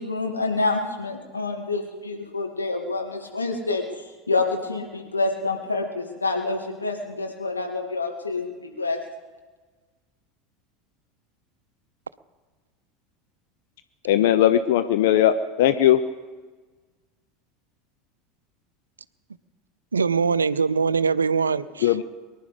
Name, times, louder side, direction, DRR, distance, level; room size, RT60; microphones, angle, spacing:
voice 1, 0.0-9.0, left 3 dB, 90° left, 1 dB, 2.4 m, -27 dB
voice 2, 14.0-16.0 21.8-22.0, left 11 dB, 65° left, 11 dB, 0.7 m, -19 dB
voice 3, 19.9-21.9, right 5 dB, 85° right, 16 dB, 0.5 m, -22 dB
23.5 x 11.0 x 5.2 m, 1.3 s
figure-of-eight pair, 80°, 0 cm